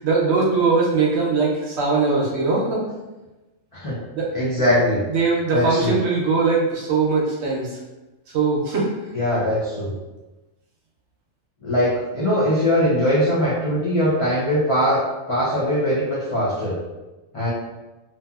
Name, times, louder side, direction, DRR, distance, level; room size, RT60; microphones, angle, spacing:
voice 1, 0.0-2.8 4.1-4.3 5.1-7.7 8.3-8.9, right 4 dB, 65° right, -3 dB, 0.8 m, -20 dB
voice 2, 4.3-5.0 5.5-6.0 9.1-9.9 11.6-16.8 17.3-17.5, equal, 45° left, -8 dB, 0.4 m, -21 dB
2.6 x 2.6 x 2.3 m, 1.1 s
omnidirectional pair, 1.4 m